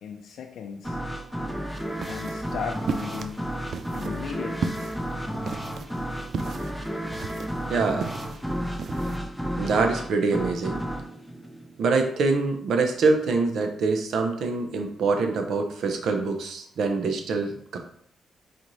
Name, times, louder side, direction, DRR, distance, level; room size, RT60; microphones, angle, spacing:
voice 1, 0.0-1.0 2.1-3.5 3.9-4.8, left 6 dB, 75° left, 2 dB, 0.4 m, -36 dB
sound 1, 0.8-12.3, equal, ahead, 0.5 m, -32 dB
sound 2, 1.8-9.2, right 5 dB, 55° right, 0.4 m, -35 dB
voice 2, 7.7-8.1 9.6-10.8 11.8-17.8, right 4 dB, 75° right, 5 dB, 0.7 m, -25 dB
4.2 x 3.9 x 3.1 m, 0.65 s
cardioid pair, 125°, 0 cm